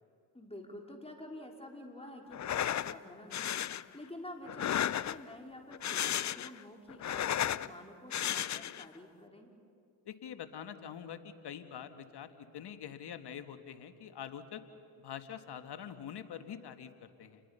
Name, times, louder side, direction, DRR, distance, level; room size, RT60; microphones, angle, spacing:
voice 1, 0.3-3.7 3.9-9.5, left 1 dB, 15° left, 2 dB, 4.1 m, -49 dB
sound 1, 2.3-2.9 3.3-3.8 4.5-5.3 5.7-6.6 6.9-7.7 8.1-8.9, left 11 dB, 40° left, 0.6 m, -33 dB
voice 2, 10.0-14.6 15.0-17.4, left 8 dB, 65° left, 9 dB, 1.6 m, -45 dB
29.0 x 21.0 x 5.6 m, 2.4 s
supercardioid pair, 50°, 43 cm